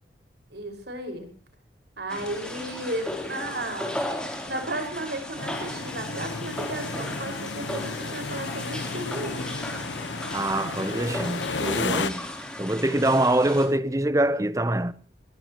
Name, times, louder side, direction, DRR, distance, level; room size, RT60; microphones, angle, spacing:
voice 1, 0.5-1.3 2.0-4.0 4.5-9.6, right 1 dB, 70° right, 5.5 m, -34 dB
sound 1, 2.1-13.7, left 1 dB, 5° left, 3.5 m, -36 dB
sound 2, 5.4-12.1, left 4 dB, 90° left, 1.1 m, -33 dB
voice 2, 10.3-12.3 12.6-14.9, right 1 dB, 20° right, 0.8 m, -24 dB
21.5 x 21.5 x 3.1 m
head